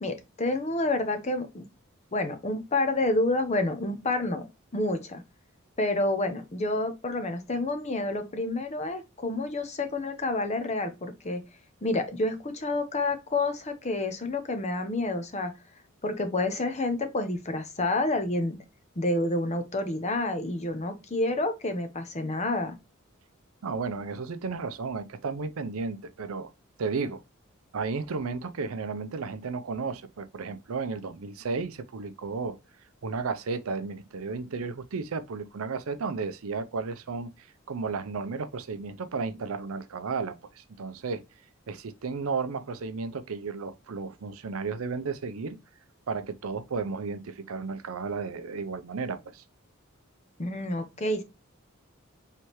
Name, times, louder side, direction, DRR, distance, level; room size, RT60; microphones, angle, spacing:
voice 1, 0.0-1.7 2.1-4.4 4.7-5.2 5.8-11.4 11.8-15.5 16.0-18.6 19.0-22.8 50.4-51.2, left 2 dB, 30° left, 0.8 m, -29 dB
voice 2, 23.6-26.5 26.8-27.2 27.7-32.6 33.0-41.2 41.7-45.6 46.1-49.4, right 4 dB, 85° right, 0.5 m, -33 dB
4.6 x 3.3 x 2.9 m
head